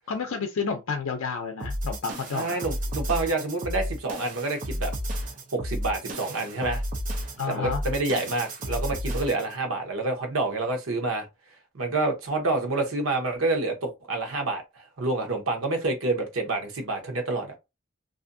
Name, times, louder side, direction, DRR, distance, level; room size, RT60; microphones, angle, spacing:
voice 1, 0.1-2.6 7.4-7.8, left 5 dB, 85° left, 0.5 m, -30 dB
sound 1, 1.6-9.5, equal, 40° right, 0.5 m, -32 dB
voice 2, 2.3-4.9 5.5-6.8 7.5-11.3 11.7-14.6 15.0-17.5, right 2 dB, 90° right, 0.8 m, -28 dB
2.6 x 2.5 x 2.5 m
head